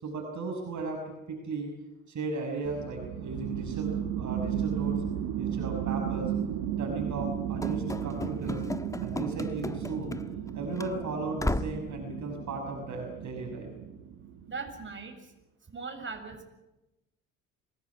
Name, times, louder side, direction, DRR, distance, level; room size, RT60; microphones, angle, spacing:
voice 1, 0.0-1.7 2.1-5.0 5.4-6.3 6.8-8.6 9.0-10.2 10.5-13.7, right 3 dB, 50° right, 2 dB, 6.0 m, -36 dB
sound 1, 2.6-14.7, right 9 dB, 70° right, 1.9 m, -34 dB
Run / Slam, 7.6-10.5 10.8-10.9 11.4-11.9, left 2 dB, 10° left, 1.2 m, -35 dB
voice 2, 14.5-15.3 15.7-16.5, right 4 dB, 30° right, 4 dB, 7.1 m, -39 dB
25.5 x 18.5 x 9.7 m, 0.98 s
hypercardioid pair, 55°, 38 cm